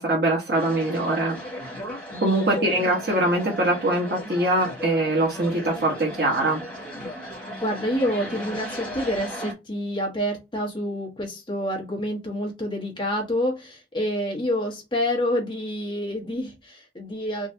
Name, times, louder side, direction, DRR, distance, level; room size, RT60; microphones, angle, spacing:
voice 1, 0.0-1.4 2.2-6.6, right 1 dB, 60° right, -2 dB, 1.1 m, -23 dB
sound 1, 0.5-9.5, equal, 5° left, 1.1 m, -36 dB
voice 2, 7.6-17.5, equal, 25° left, -1 dB, 1.4 m, -28 dB
3.8 x 2.5 x 2.6 m, 0.23 s
head